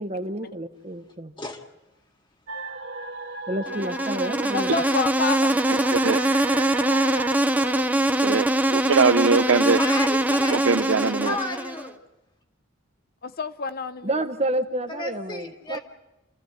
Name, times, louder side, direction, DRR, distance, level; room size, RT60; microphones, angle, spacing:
voice 1, 0.0-1.3 3.5-4.7 14.0-15.8, right 1 dB, 35° right, 1.1 m, -29 dB
sound 1, 2.5-7.8, right 3 dB, 60° right, 1.9 m, -35 dB
Insect, 3.7-11.9, right 1 dB, 10° right, 0.8 m, -23 dB
voice 2, 4.5-5.6 13.2-14.2, left 4 dB, 50° left, 0.7 m, -29 dB
voice 3, 8.2-9.8 10.5-11.4, right 4 dB, 85° right, 0.7 m, -22 dB
voice 4, 9.7-12.0 14.9-15.8, left 2 dB, 25° left, 2.1 m, -33 dB
28.5 x 14.5 x 8.1 m
head